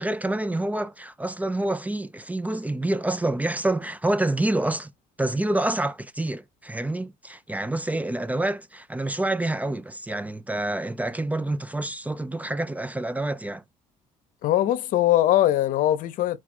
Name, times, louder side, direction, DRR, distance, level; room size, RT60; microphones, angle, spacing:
voice 1, 0.0-4.9 5.2-13.6, right 1 dB, 10° right, 0.4 m, -27 dB
voice 2, 14.4-16.4, left 13 dB, 70° left, 0.7 m, -21 dB
4.7 x 2.3 x 4.3 m
cardioid pair, 90°, 14 cm